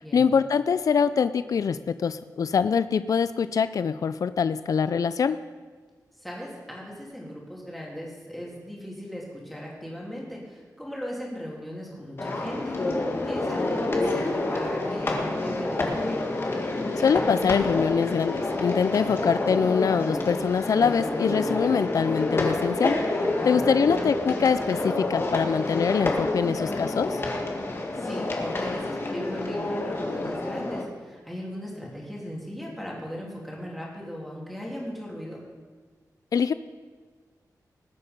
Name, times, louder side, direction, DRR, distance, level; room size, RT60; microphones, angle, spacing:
voice 1, 0.1-5.4 17.0-23.0 23.4-27.2 36.3-36.5, left 6 dB, 60° left, 13 dB, 0.4 m, -24 dB
voice 2, 6.2-16.2 23.3-23.6 27.6-35.4, equal, ahead, -4 dB, 3.1 m, -38 dB
sound 1, 12.2-30.8, left 2 dB, 35° left, 1.7 m, -28 dB
19.5 x 8.4 x 5.3 m, 1.5 s
wide cardioid pair, 160°, 7 cm